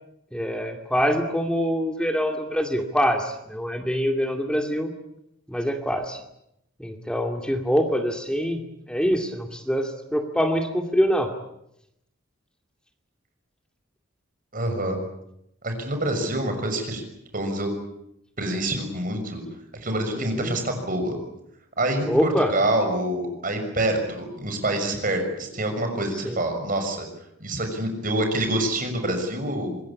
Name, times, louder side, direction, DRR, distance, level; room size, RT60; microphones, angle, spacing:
voice 1, 0.3-4.9 5.5-6.2 6.8-11.3 20.2-20.5 22.0-22.5 26.2-26.4, equal, 5° left, 4 dB, 2.4 m, -25 dB
voice 2, 14.5-15.0 15.6-17.0 17.3-17.7 18.4-19.4 19.8-21.2 21.8-27.0 27.4-29.8, right 1 dB, 45° right, 5 dB, 6.3 m, -26 dB
25.0 x 21.5 x 8.6 m, 0.79 s
head